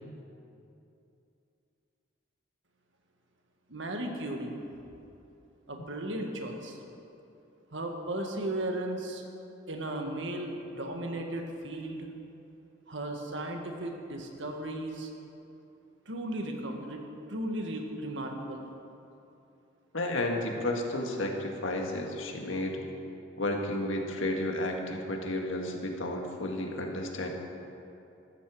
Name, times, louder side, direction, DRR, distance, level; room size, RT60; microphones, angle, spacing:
voice 1, 3.7-4.6 5.7-6.8 7.7-9.2 9.7-12.1 12.9-15.1 16.1-17.0 17.3-18.6, right 1 dB, 70° right, 2 dB, 1.7 m, -35 dB
voice 2, 19.9-22.8 23.4-27.3, left 1 dB, 85° left, 2 dB, 1.7 m, -32 dB
15.0 x 13.0 x 4.9 m, 2.8 s
head